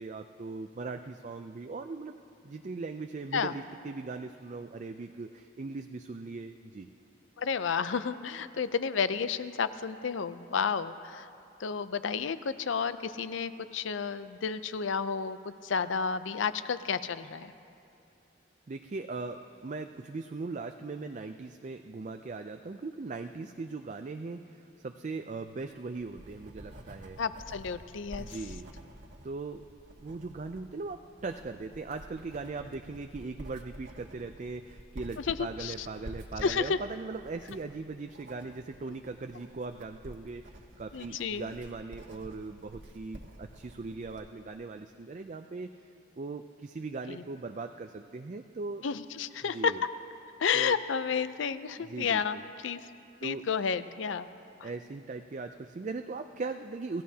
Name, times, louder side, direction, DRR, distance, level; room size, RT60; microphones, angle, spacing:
voice 1, 0.0-2.2 2.4-6.9 18.7-27.2 28.2-28.7 29.2-29.6 30.0-45.7 46.2-48.8 49.5-49.8 50.5-50.8 51.8-52.4 53.2-53.4 54.6-57.0, right 3 dB, 40° right, 6 dB, 0.4 m, -39 dB
voice 2, 7.4-11.3 11.6-17.5 27.2-28.4 35.2-35.9 36.4-36.8 40.9-41.5 47.1-47.2 48.8-49.7 50.4-52.8 53.2-54.3 54.6-54.7, left 6 dB, 75° left, 13 dB, 0.5 m, -31 dB
Writing, 25.7-44.3, right 1 dB, 65° right, 1.4 m, -49 dB
27.0 x 16.0 x 2.8 m, 2.6 s
head